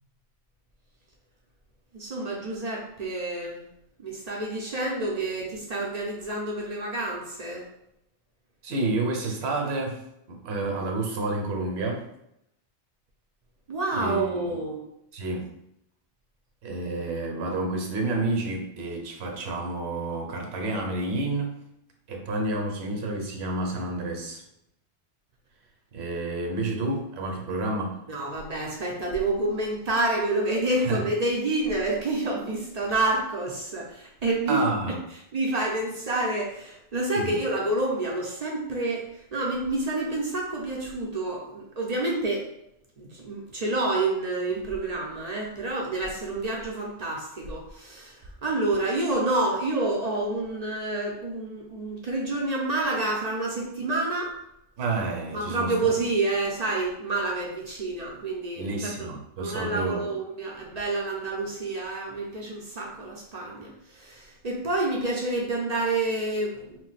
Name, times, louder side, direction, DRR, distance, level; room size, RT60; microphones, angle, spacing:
voice 1, 1.9-3.6 4.0-7.7 13.7-14.9 28.1-34.9 35.3-42.5 43.0-54.3 55.3-59.1 59.4-66.8, right 2 dB, 50° right, -1 dB, 0.5 m, -28 dB
voice 2, 8.6-10.0 10.3-12.1 14.0-14.4 15.1-15.5 16.6-21.5 22.1-24.4 25.9-28.0 30.8-31.0 34.5-34.9 37.2-37.4 54.8-56.0 58.6-60.0, right 2 dB, 70° right, 2 dB, 0.9 m, -29 dB
2.5 x 2.1 x 3.9 m, 0.79 s
omnidirectional pair, 1.1 m